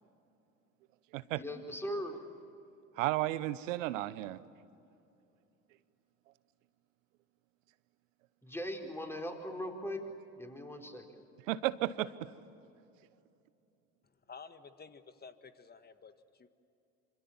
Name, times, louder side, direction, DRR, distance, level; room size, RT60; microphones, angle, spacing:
voice 1, 1.3-2.2 8.4-10.0 10.4-11.2, equal, 5° left, 2 dB, 4.3 m, -40 dB
voice 2, 3.0-4.4 11.5-12.1, right 16 dB, 70° right, 16 dB, 1.1 m, -33 dB
voice 3, 14.3-16.5, left 5 dB, 25° left, 10 dB, 1.7 m, -52 dB
26.5 x 26.5 x 7.4 m, 2.7 s
hypercardioid pair, 75°, 40 cm